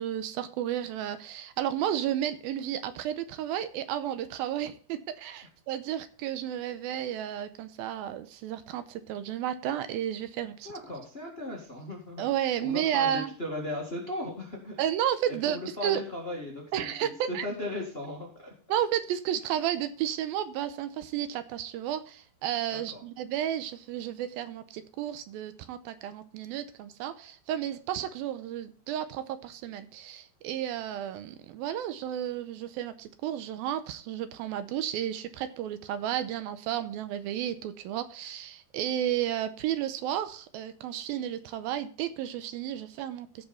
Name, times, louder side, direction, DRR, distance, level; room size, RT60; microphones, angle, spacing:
voice 1, 0.0-10.7 12.2-13.3 14.8-16.0 16.7-17.5 18.7-43.5, right 11 dB, 80° right, 11 dB, 2.4 m, -32 dB
voice 2, 10.6-12.2 12.6-14.8 15.5-18.5 22.7-23.0, left 1 dB, 25° left, -1 dB, 1.3 m, -37 dB
16.0 x 5.6 x 4.2 m, 0.41 s
omnidirectional pair, 4.5 m